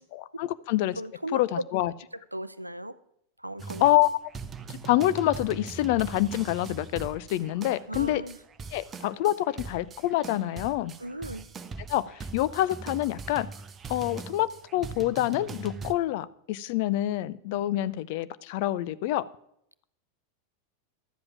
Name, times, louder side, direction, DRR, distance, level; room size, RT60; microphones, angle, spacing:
voice 1, 0.0-1.0 1.3-1.9 3.8-4.1 4.7-8.2 8.7-10.9 11.9-13.5 13.9-19.2, left 14 dB, 50° left, 16 dB, 0.5 m, -27 dB
voice 2, 1.0-1.6 2.1-3.0 3.4-3.9 7.9-8.4 11.0-11.4, right 1 dB, 85° right, 15 dB, 0.6 m, -36 dB
sound 1, 3.6-15.9, right 4 dB, 20° right, 0.7 m, -41 dB
12.5 x 7.8 x 7.2 m, 0.74 s
figure-of-eight pair, 90°, 0 cm